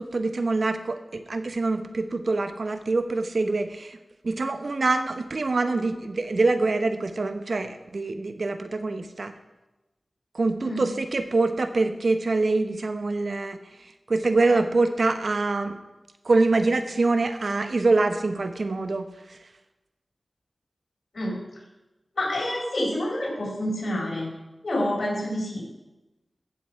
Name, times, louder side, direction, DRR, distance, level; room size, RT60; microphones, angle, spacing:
voice 1, 0.0-4.0 4.2-9.3 10.3-13.6 14.1-15.8 16.2-19.1, right 3 dB, 70° right, 8 dB, 0.9 m, -25 dB
voice 2, 22.2-24.3 24.6-25.6, left 1 dB, 75° left, -3 dB, 4.4 m, -28 dB
14.5 x 7.8 x 4.7 m, 1.0 s
wide cardioid pair, 55°, 0 cm